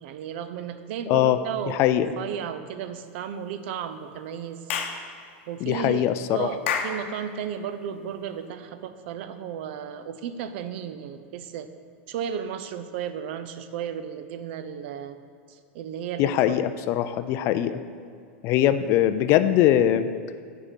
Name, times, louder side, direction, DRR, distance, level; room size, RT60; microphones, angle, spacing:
voice 1, 0.0-4.6 5.5-6.0 6.3-11.7 12.1-15.2 15.5-16.6, right 8 dB, 60° right, 10 dB, 0.5 m, -34 dB
voice 2, 1.1-1.4 1.7-2.1 5.6-6.5 16.2-17.8 18.4-20.1, left 12 dB, 40° left, 11 dB, 0.3 m, -22 dB
Clapping / Chirp tweet, 4.7-5.0 6.7-7.0, left 7 dB, 75° left, 0.8 m, -27 dB
6.5 x 4.7 x 5.7 m, 2.3 s
supercardioid pair, 140°, 7 cm